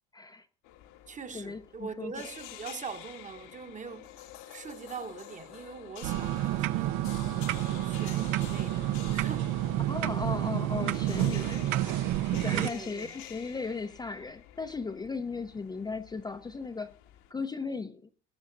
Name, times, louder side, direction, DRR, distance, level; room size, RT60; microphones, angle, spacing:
voice 1, 0.1-0.5 1.3-2.1 9.9-11.8 12.3-16.9 17.3-18.0, left 4 dB, 15° left, 0.6 m, -36 dB
sound 1, 0.6-17.3, left 13 dB, 70° left, 1.4 m, -49 dB
voice 2, 1.1-7.1 7.5-8.8 9.1-9.5 12.5-13.1, right 5 dB, 25° right, 1.1 m, -42 dB
sound 2, 6.0-12.7, right 14 dB, 80° right, 0.9 m, -29 dB
19.5 x 8.7 x 4.0 m
cardioid pair, 140°, 31 cm